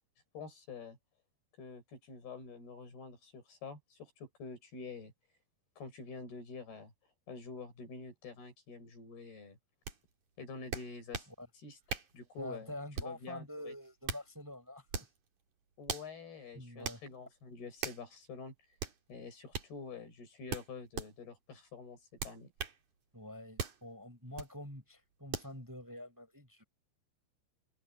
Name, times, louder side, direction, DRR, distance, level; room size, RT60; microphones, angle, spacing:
voice 1, 0.3-1.0 1.6-5.1 5.8-6.9 7.3-9.6 10.4-11.3 11.6-11.8 12.1-13.7 15.8-18.5 19.1-22.5, left 4 dB, 70° left, 8.8 m, -47 dB
sound 1, 9.9-10.0 10.7-11.3 11.9-12.2 12.9-13.2 13.8-14.3 14.9-15.2 15.9-16.1 16.8-17.0 17.8-18.0 18.8-19.0 19.5-19.7 20.5-21.1 22.2-22.8 23.6-23.8 24.4-24.5 25.3-25.5, right 6 dB, 50° right, 4.3 m, -39 dB
voice 2, 12.4-15.1 16.5-17.0 23.1-26.6, left 1 dB, 5° right, 5.0 m, -46 dB
omnidirectional pair, 4.6 m